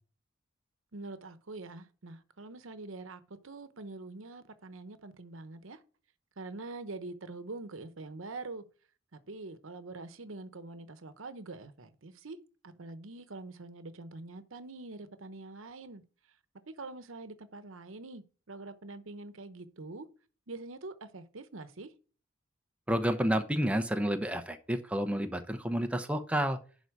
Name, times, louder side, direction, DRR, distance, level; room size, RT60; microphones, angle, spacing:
voice 1, 0.9-5.8 6.4-8.6 9.3-12.4 12.6-16.0 16.7-20.1 20.5-21.9, right 3 dB, 80° right, 0.9 m, -44 dB
voice 2, 22.9-26.6, equal, 5° right, 0.8 m, -30 dB
11.0 x 4.1 x 4.9 m
head